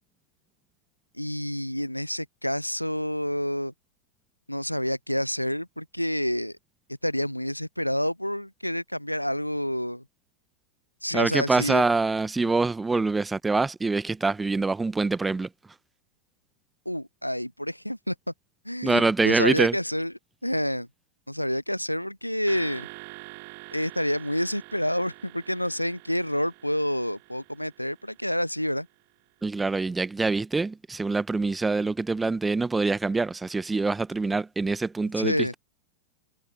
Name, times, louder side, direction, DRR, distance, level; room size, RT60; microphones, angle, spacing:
voice 1, 1.2-3.7 4.5-6.6 7.0-10.0 11.0-11.8 16.9-18.2 18.6-20.1 20.4-20.9 21.3-22.9 23.7-28.9 35.2-35.5, equal, 90° left, 0.3 m, -28 dB
voice 2, 11.1-15.5 18.8-19.8 29.4-35.6, right 3 dB, 10° right, 1.4 m, -25 dB
sound 1, 22.5-28.8, right 34 dB, 45° right, 5.3 m, -46 dB
figure-of-eight pair, 90°, 0 cm